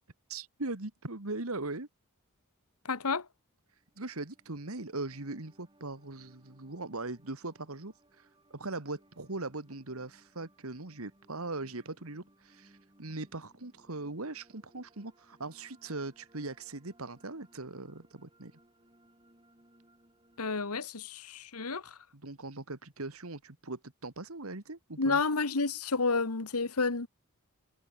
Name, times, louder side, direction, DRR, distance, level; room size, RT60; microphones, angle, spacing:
voice 1, 0.3-1.9 4.0-18.5 22.1-25.2, right 2 dB, 70° right, 2.1 m, -40 dB
voice 2, 2.8-3.3 20.4-22.0 25.0-27.1, left 4 dB, 85° left, 1.6 m, -30 dB
sound 1, 3.7-20.6, right 1 dB, 20° right, 6.8 m, -65 dB
head